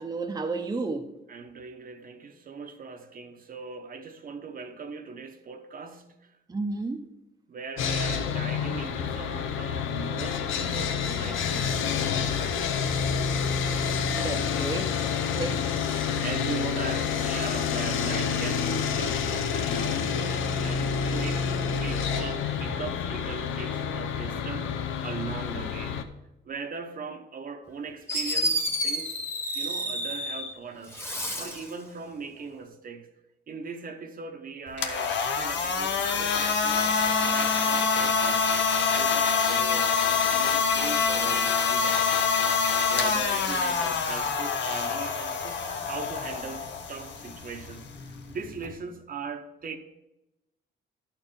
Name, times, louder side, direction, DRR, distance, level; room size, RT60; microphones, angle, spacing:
voice 1, 0.0-1.1 6.5-7.0 14.2-15.0 15.3-15.6, right 3 dB, 20° right, 0.7 m, -32 dB
voice 2, 1.3-6.3 7.5-13.5 16.2-20.2 20.6-21.5 21.7-24.7 25.0-26.0 26.4-29.3 29.5-33.1 33.5-38.4 38.9-42.3 42.9-49.8, right 5 dB, 45° right, 0.9 m, -40 dB
Sawing, 7.8-26.0, left 7 dB, 85° left, 0.7 m, -28 dB
Fireworks, 27.7-27.8 28.1-30.5 30.9-31.7, equal, 10° left, 1.3 m, -30 dB
sound 1, 34.7-48.7, left 5 dB, 65° left, 1.0 m, -26 dB
11.5 x 4.5 x 5.2 m
cardioid pair, 90°, 20 cm